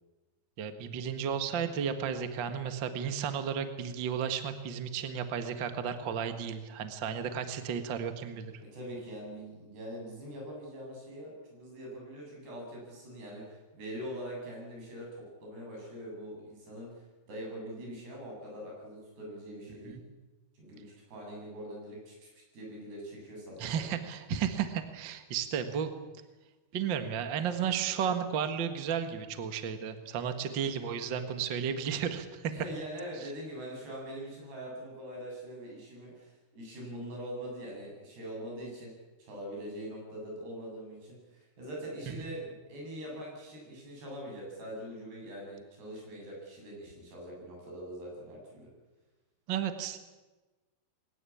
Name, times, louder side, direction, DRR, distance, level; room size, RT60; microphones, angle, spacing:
voice 1, 0.6-8.5 19.8-20.0 23.6-25.9 26.7-32.5 49.5-50.0, right 7 dB, 85° right, 8 dB, 1.0 m, -33 dB
voice 2, 8.6-20.0 20.5-23.8 32.5-38.9 39.2-48.7, equal, 65° right, -1 dB, 10.0 m, -43 dB
21.5 x 19.5 x 8.6 m, 1.2 s
omnidirectional pair, 5.1 m